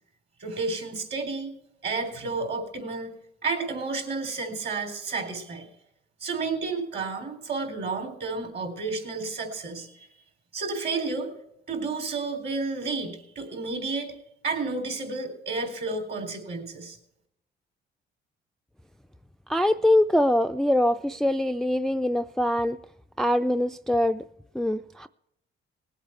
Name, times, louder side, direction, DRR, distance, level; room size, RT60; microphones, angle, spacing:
voice 1, 0.4-1.6 1.8-3.1 3.4-5.7 6.2-10.1 10.5-11.3 11.7-14.1 14.4-17.0, right 3 dB, 55° right, 5 dB, 3.8 m, -31 dB
voice 2, 19.5-22.8 23.2-24.2 24.5-25.1, left 1 dB, ahead, 10 dB, 0.4 m, -23 dB
19.5 x 8.2 x 4.5 m, 0.76 s
cardioid pair, 90°, 20 cm